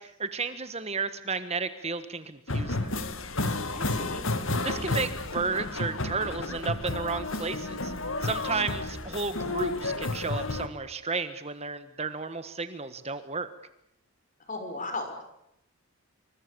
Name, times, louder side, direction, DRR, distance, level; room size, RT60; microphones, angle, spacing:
voice 1, 0.0-2.8 4.6-7.9 8.2-13.5, right 4 dB, 30° right, 11 dB, 1.4 m, -33 dB
sound 1, 2.5-10.7, left 2 dB, 65° left, 2.4 m, -31 dB
voice 2, 3.7-4.2 14.5-15.2, left 2 dB, 35° left, 6 dB, 6.3 m, -36 dB
28.0 x 25.5 x 7.0 m, 0.81 s
head